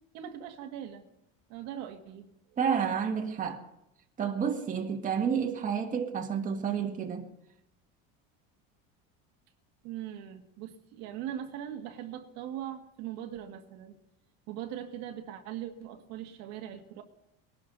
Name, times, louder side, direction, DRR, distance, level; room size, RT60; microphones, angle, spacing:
voice 1, 0.1-1.1 1.5-2.3 9.8-14.0 14.5-17.0, right 10 dB, 70° right, 1.9 m, -40 dB
voice 2, 2.6-3.6 4.2-7.3, right 7 dB, 25° right, 1.8 m, -30 dB
21.5 x 12.0 x 4.0 m
cardioid pair, 135°, 29 cm